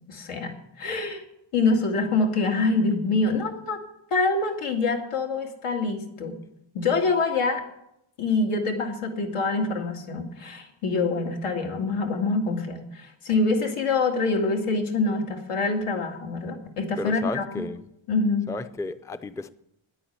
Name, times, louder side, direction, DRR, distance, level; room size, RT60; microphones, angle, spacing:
voice 1, 0.1-1.2 1.5-3.8 4.1-6.4 6.7-7.6 8.2-17.6 18.1-18.4, left 3 dB, 85° left, 2 dB, 2.4 m, -25 dB
voice 2, 17.0-17.9 18.5-19.5, left 2 dB, 5° left, 11 dB, 0.4 m, -33 dB
10.0 x 8.9 x 9.4 m, 0.80 s
wide cardioid pair, 130°, 50 cm